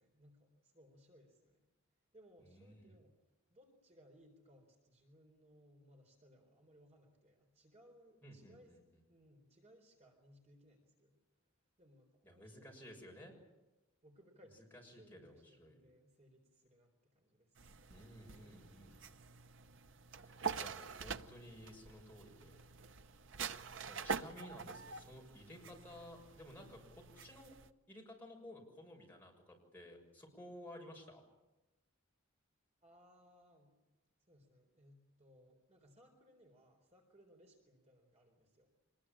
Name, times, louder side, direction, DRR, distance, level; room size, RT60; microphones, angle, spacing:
voice 1, 0.0-1.7 2.1-3.2 3.5-8.8 9.1-11.2 11.8-12.7 14.0-17.9 18.3-19.0 32.8-33.8 34.3-38.7, equal, 30° right, 2 dB, 4.0 m, -65 dB
voice 2, 2.4-2.9 8.2-8.8 12.2-13.3 14.7-15.8 17.9-19.2 20.2-22.6 23.5-27.6 27.9-31.2, left 1 dB, 10° left, -1 dB, 6.6 m, -55 dB
sound 1, 17.6-27.7, right 5 dB, 60° right, 0.8 m, -46 dB
25.5 x 21.0 x 8.8 m, 1.0 s
head